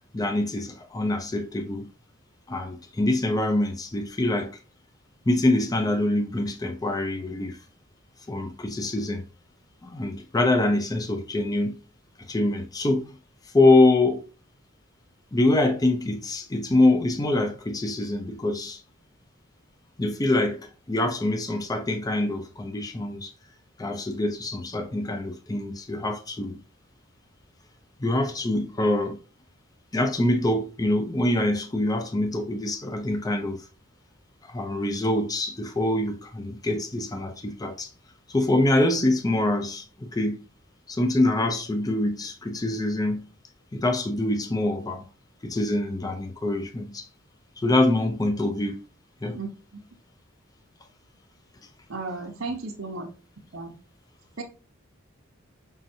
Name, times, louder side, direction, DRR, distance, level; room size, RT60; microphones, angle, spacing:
voice 1, 0.1-1.9 2.5-4.6 5.3-7.6 8.3-9.2 9.8-11.7 12.2-13.1 13.5-14.2 15.3-18.8 20.0-23.3 23.8-26.6 28.0-29.2 29.9-33.7 34.4-37.9 38.3-40.4 40.9-43.3 43.7-45.1 45.4-47.1 47.6-48.8 49.2-49.4, left 2 dB, 20° left, 0.5 m, -25 dB
voice 2, 51.9-53.1 53.5-53.7 54.4-54.5, right 3 dB, 75° right, 0.9 m, -33 dB
5.5 x 2.6 x 2.7 m
head